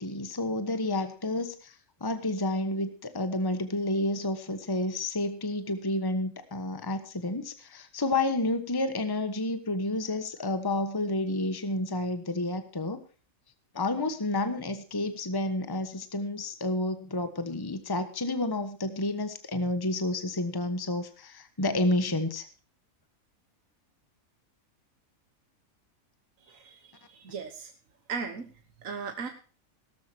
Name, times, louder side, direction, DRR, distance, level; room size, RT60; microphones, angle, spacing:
voice 1, 0.0-13.0 13.7-22.5, left 2 dB, 15° left, 10 dB, 1.2 m, -30 dB
voice 2, 26.5-27.7 28.1-28.5 28.8-29.3, right 5 dB, 70° right, 6 dB, 1.8 m, -37 dB
17.5 x 13.5 x 2.9 m, 0.37 s
omnidirectional pair, 1.4 m